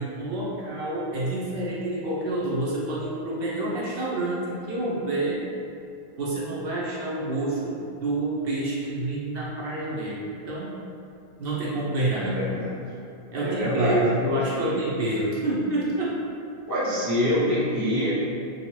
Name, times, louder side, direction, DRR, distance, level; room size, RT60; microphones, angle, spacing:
voice 1, 0.0-5.4 6.2-10.7 11.4-12.4 13.3-16.2, right 2 dB, 65° right, -6 dB, 0.8 m, -28 dB
voice 2, 12.1-13.0 13.4-14.7 16.7-18.1, left 1 dB, 25° right, -9 dB, 0.5 m, -26 dB
2.6 x 2.3 x 3.0 m, 2.5 s
omnidirectional pair, 1.1 m